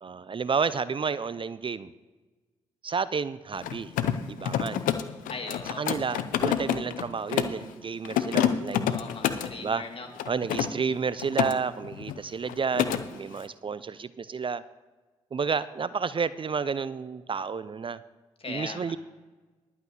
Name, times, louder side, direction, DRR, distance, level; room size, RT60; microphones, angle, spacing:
voice 1, 0.0-1.9 2.8-3.9 4.3-4.8 5.8-8.9 9.6-9.8 10.3-14.6 15.3-18.0 18.5-19.0, right 5 dB, 40° right, 16 dB, 0.5 m, -31 dB
Mechanisms, 3.5-7.6 8.0-9.5 10.2-11.5 11.8-12.2 12.5-13.0, left 10 dB, 80° left, 0.6 m, -28 dB
voice 2, 5.3-5.8 8.9-10.1 18.4-19.0, left 3 dB, 45° left, 3 dB, 2.2 m, -39 dB
11.5 x 5.8 x 7.9 m, 1.3 s
hypercardioid pair, 45°, 14 cm